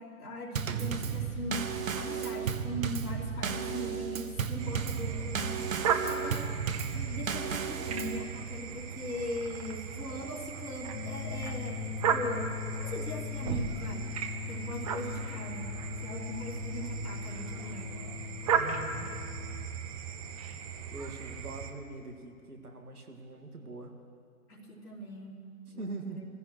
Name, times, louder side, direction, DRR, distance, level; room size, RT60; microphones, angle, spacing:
voice 1, 0.0-6.6 6.9-14.2 14.5-15.7 16.0-18.1 24.5-26.3, left 1 dB, 90° left, -3 dB, 3.1 m, -40 dB
Drum kit / Snare drum / Bass drum, 0.6-8.2, right 6 dB, 65° right, 1.1 m, -34 dB
sound 1, 4.6-21.7, right 6 dB, 25° right, 0.6 m, -36 dB
sound 2, 10.9-19.7, left 12 dB, 60° left, 0.9 m, -41 dB
voice 2, 18.5-19.1 20.9-23.9 25.8-26.2, right 3 dB, 85° right, 2 dB, 2.1 m, -42 dB
23.5 x 15.5 x 3.2 m, 2.3 s
figure-of-eight pair, 130°, 44 cm